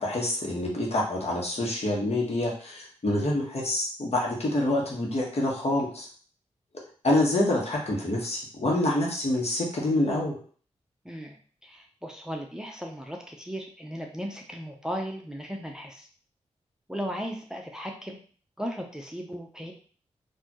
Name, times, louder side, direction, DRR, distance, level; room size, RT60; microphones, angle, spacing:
voice 1, 0.0-6.1 7.0-10.4, left 1 dB, 55° left, -2 dB, 1.5 m, -26 dB
voice 2, 11.0-11.4 11.6-16.1 16.9-18.2 18.6-19.7, equal, 5° right, 1 dB, 0.7 m, -36 dB
4.1 x 2.8 x 3.0 m, 0.43 s
cardioid pair, 45°, 13 cm